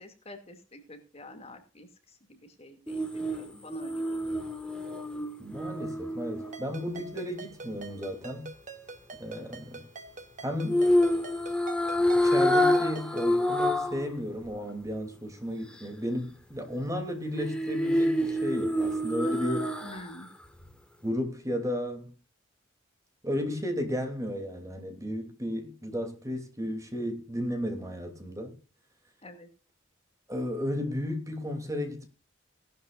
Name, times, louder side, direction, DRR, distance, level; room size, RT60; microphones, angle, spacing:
voice 1, 0.0-4.4 19.8-20.3 29.2-29.5, equal, 30° left, 2.4 m, -47 dB
sound 1, 2.9-7.1 10.7-14.1 14.4-14.5 17.4-20.2 20.6-20.7, left 1 dB, 5° left, 1.6 m, -27 dB
voice 2, 5.4-8.5 9.2-9.8 10.4-10.9 12.2-19.8 21.0-22.1 23.2-28.5 30.3-32.1, equal, 15° right, 2.8 m, -33 dB
Ringtone, 6.5-13.4, right 4 dB, 40° right, 1.9 m, -46 dB
18.0 x 12.0 x 2.5 m
head